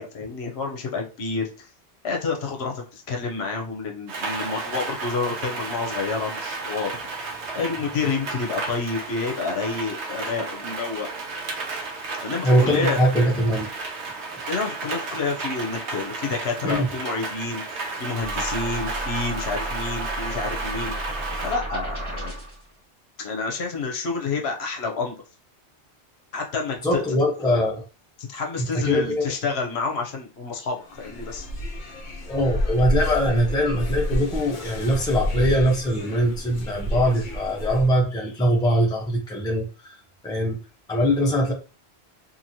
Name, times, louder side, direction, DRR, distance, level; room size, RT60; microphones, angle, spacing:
voice 1, 0.0-1.7 2.0-7.0 7.5-11.1 12.2-13.0 14.5-20.9 21.4-22.4 23.2-25.1 26.3-27.0 28.3-31.5, left 4 dB, 70° left, 2 dB, 0.9 m, -29 dB
Rain, 4.1-21.6, right 3 dB, 80° right, 1.0 m, -33 dB
voice 2, 12.4-13.7 16.6-16.9 26.8-27.7 28.6-29.3 32.3-40.0 40.2-40.6 40.9-41.5, equal, 5° left, -2 dB, 0.5 m, -22 dB
sound 1, 18.2-22.6, right 1 dB, 25° right, 1.6 m, -32 dB
sound 2, 30.8-38.0, equal, 55° left, 0.7 m, -29 dB
2.9 x 2.6 x 2.6 m, 0.34 s
omnidirectional pair, 1.1 m